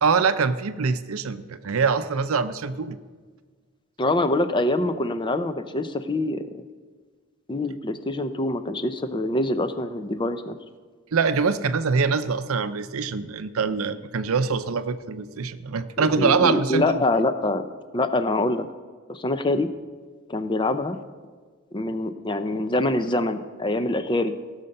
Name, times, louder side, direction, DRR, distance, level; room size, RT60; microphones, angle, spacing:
voice 1, 0.0-3.0 11.1-17.0, right 5 dB, 85° right, 12 dB, 0.6 m, -24 dB
voice 2, 4.0-6.6 7.5-10.6 16.0-17.6 17.9-18.7 19.1-19.7 20.3-21.0 21.7-24.3, left 2 dB, 20° left, 10 dB, 0.6 m, -25 dB
17.0 x 6.6 x 5.5 m, 1.5 s
head